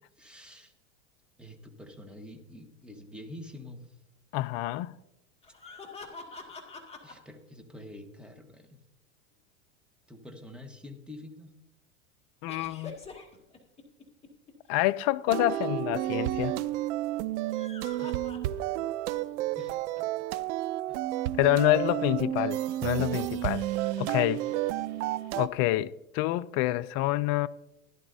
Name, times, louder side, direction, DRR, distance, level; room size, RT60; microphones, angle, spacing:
voice 1, 0.2-0.7 1.4-4.0 7.0-8.8 10.1-11.5 17.9-18.2 19.6-20.1 20.9-21.0 24.2-24.7, left 1 dB, 5° right, 1.4 m, -47 dB
voice 2, 4.3-4.9 12.4-12.9 14.7-16.5 21.4-23.7 24.0-24.4 25.4-27.5, left 17 dB, 40° left, 0.4 m, -27 dB
sound 1, 5.4-7.1 12.5-14.5 17.3-18.9 19.3-19.4 21.7-21.8 23.6-24.7, left 3 dB, 15° left, 2.0 m, -46 dB
sound 2, 15.3-25.5, right 14 dB, 65° right, 0.6 m, -31 dB
16.0 x 11.0 x 2.7 m
hypercardioid pair, 115°, 39 cm